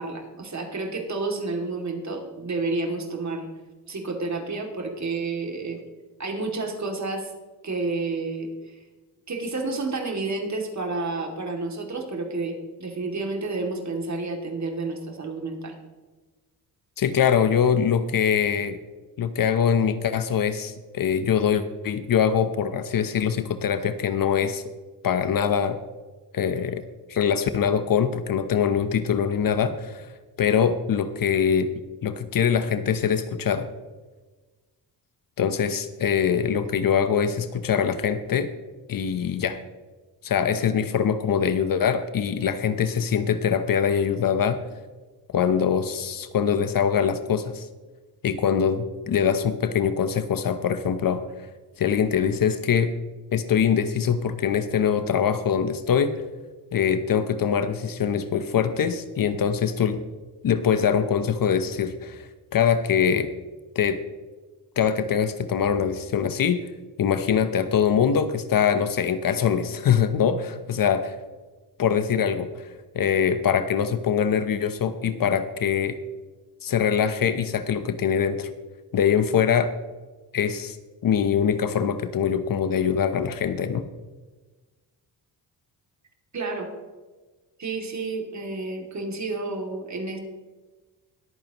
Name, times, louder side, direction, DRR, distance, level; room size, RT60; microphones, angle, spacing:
voice 1, 0.0-3.5 3.9-5.8 6.2-7.3 7.6-8.8 9.3-15.8 86.3-86.7 87.6-90.2, right 3 dB, 40° right, 2 dB, 2.6 m, -30 dB
voice 2, 17.0-18.8 19.2-24.6 25.0-25.8 26.3-26.8 27.1-30.1 30.4-31.7 32.0-33.7 35.4-38.5 38.9-39.6 40.2-44.6 45.3-47.7 48.2-51.2 51.8-52.9 53.3-56.2 56.7-60.0 60.4-63.3 63.7-64.0 64.8-66.7 67.0-71.1 71.8-72.7 72.9-76.0 76.6-78.5 78.9-79.7 80.3-80.8 81.0-83.9, left 7 dB, 55° left, 11 dB, 0.9 m, -23 dB
21.5 x 8.7 x 3.0 m, 1.3 s
cardioid pair, 85°, 41 cm